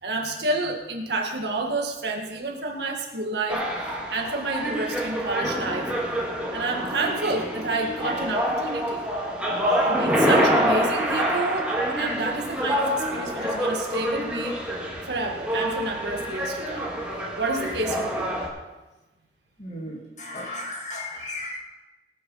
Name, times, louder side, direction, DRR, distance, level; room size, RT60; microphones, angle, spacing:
voice 1, 0.0-3.6 4.1-5.9 6.5-9.1 9.8-14.6 15.0-16.9 17.4-18.3, right 2 dB, 75° right, 1 dB, 1.8 m, -29 dB
sound 1, 3.5-18.5, equal, 5° right, 2.0 m, -26 dB
voice 2, 19.6-21.6, left 1 dB, 40° left, -2 dB, 2.7 m, -35 dB
19.0 x 6.6 x 5.5 m, 1.1 s
head